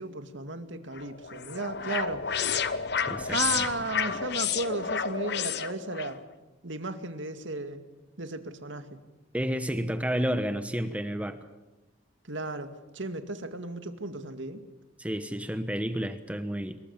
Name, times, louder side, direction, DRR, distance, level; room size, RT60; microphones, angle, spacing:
voice 1, 0.0-2.2 3.3-6.2 6.6-7.8 8.2-9.0 12.2-14.6, right 2 dB, 75° right, 8 dB, 2.2 m, -34 dB
sound 1, 0.9-6.1, left 7 dB, 55° left, 1.1 m, -31 dB
voice 2, 3.1-3.6 9.3-11.4 15.0-16.8, equal, 5° right, 9 dB, 1.2 m, -31 dB
26.5 x 23.0 x 7.2 m, 1.1 s
head